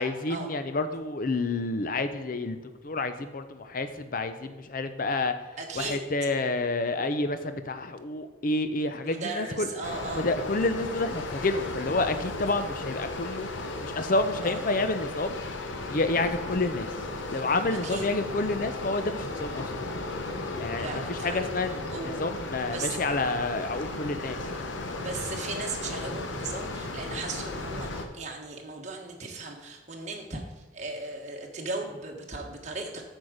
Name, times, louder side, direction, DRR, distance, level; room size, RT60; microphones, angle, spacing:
voice 1, 0.0-2.6 2.8-5.3 5.7-9.7 10.1-13.5 13.8-15.4 15.9-16.9 17.3-19.7 20.6-24.6, left 2 dB, 45° left, 10 dB, 0.6 m, -29 dB
voice 2, 5.6-6.0 9.0-10.3 14.4-14.6 17.8-18.1 20.8-21.5 21.9-22.2 22.7-23.0 24.9-33.0, right 3 dB, 35° right, 1 dB, 1.2 m, -37 dB
sound 1, 9.8-28.0, left 2 dB, 75° left, 0.9 m, -35 dB
8.2 x 6.3 x 5.0 m, 1.2 s
head